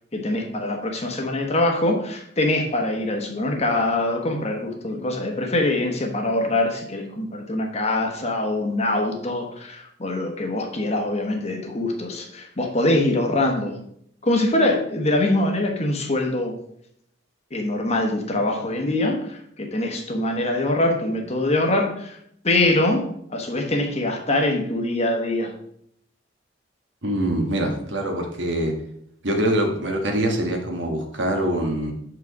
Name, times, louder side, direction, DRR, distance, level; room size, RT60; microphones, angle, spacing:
voice 1, 0.1-13.8 14.2-16.6 17.5-22.2 22.4-25.5, left 1 dB, 35° left, 3 dB, 1.1 m, -23 dB
voice 2, 27.0-28.7 29.2-31.9, right 1 dB, 75° right, 3 dB, 1.4 m, -24 dB
6.6 x 5.0 x 4.7 m, 0.70 s
head